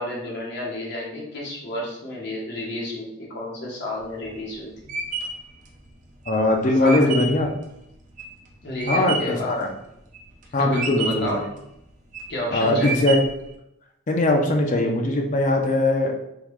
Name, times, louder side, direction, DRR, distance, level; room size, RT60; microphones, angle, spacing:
voice 1, 0.0-4.7 6.8-7.2 8.6-9.6 10.5-11.5 12.3-13.1, left 1 dB, 50° left, -3 dB, 0.9 m, -31 dB
sound 1, 4.0-9.5 9.9-10.4 10.7-11.4 11.9-12.4 12.8-13.5, right 4 dB, 35° right, 0.4 m, -30 dB
voice 2, 6.3-7.5 8.9-9.7 10.5-11.4 12.5-13.2 14.1-16.1, left 2 dB, 35° left, 2 dB, 0.5 m, -20 dB
3.7 x 2.3 x 3.0 m, 0.82 s
head